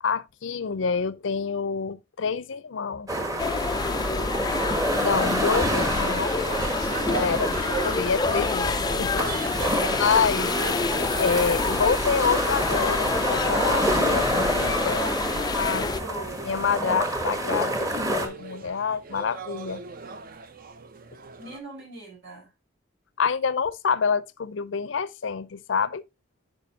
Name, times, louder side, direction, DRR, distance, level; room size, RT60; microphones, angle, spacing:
voice 1, 0.0-3.2 5.0-6.4 7.1-7.5 7.8-9.2 10.0-10.5 11.2-15.0 15.5-15.9 16.4-19.8 23.2-26.0, left 5 dB, 70° left, 0.5 m, -27 dB
sound 1, 3.1-18.3, right 1 dB, 15° right, 1.1 m, -28 dB
sound 2, 3.4-16.0, left 4 dB, 20° left, 0.3 m, -28 dB
voice 2, 3.8-4.4 9.2-10.9 14.8-16.4 21.4-22.5, right 2 dB, 75° right, 4.9 m, -39 dB
sound 3, 5.5-21.6, right 5 dB, 45° right, 0.7 m, -40 dB
9.3 x 5.1 x 2.8 m
head